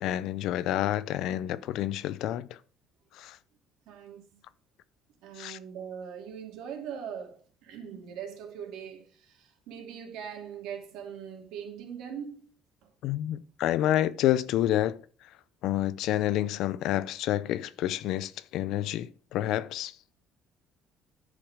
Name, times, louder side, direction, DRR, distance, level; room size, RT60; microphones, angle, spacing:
voice 1, 0.0-2.6 3.1-3.4 5.4-5.6 13.0-15.0 15.6-20.0, left 13 dB, 60° left, 0.5 m, -29 dB
voice 2, 3.9-4.4 5.2-12.5, right 8 dB, 75° right, 2.5 m, -41 dB
10.5 x 5.1 x 4.9 m
cardioid pair, 180°, 0 cm